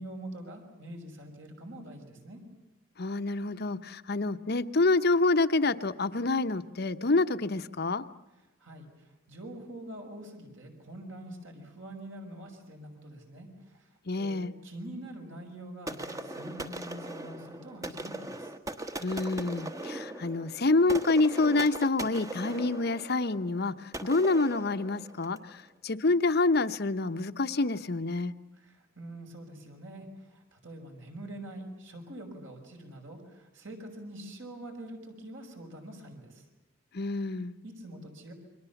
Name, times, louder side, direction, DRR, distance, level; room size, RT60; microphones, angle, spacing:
voice 1, 0.0-2.4 8.6-18.5 28.5-36.4 37.6-38.3, right 1 dB, 65° right, 2 dB, 5.9 m, -45 dB
voice 2, 3.0-8.0 14.1-14.5 19.0-23.7 24.0-25.4 25.8-28.3 36.9-37.5, left 3 dB, 50° left, 10 dB, 0.9 m, -27 dB
sound 1, 15.9-25.5, right 1 dB, 15° right, 1.2 m, -40 dB
29.0 x 23.5 x 7.1 m, 1.0 s
head